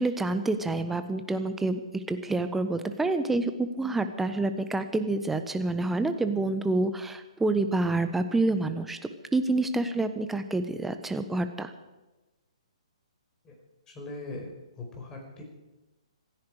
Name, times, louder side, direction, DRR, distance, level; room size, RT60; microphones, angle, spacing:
voice 1, 0.0-1.8 2.1-9.0 9.3-11.7, right 2 dB, 5° right, 9 dB, 1.1 m, -28 dB
voice 2, 13.9-15.4, left 2 dB, 15° left, 0 dB, 5.1 m, -40 dB
26.0 x 10.5 x 4.9 m, 1.1 s
figure-of-eight pair, 135°, 3 cm